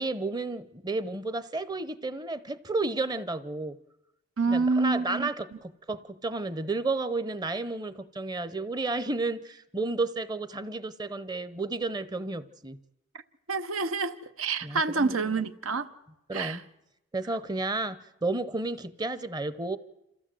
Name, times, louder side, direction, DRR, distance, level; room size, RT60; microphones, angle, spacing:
voice 1, 0.0-3.8 4.5-12.8 14.6-15.2 16.3-16.6 17.1-19.8, right 2 dB, 20° right, 0.7 m, -32 dB
voice 2, 4.4-5.3 13.5-15.9 16.3-16.6, right 4 dB, 85° right, 0.9 m, -27 dB
27.0 x 15.0 x 7.6 m
head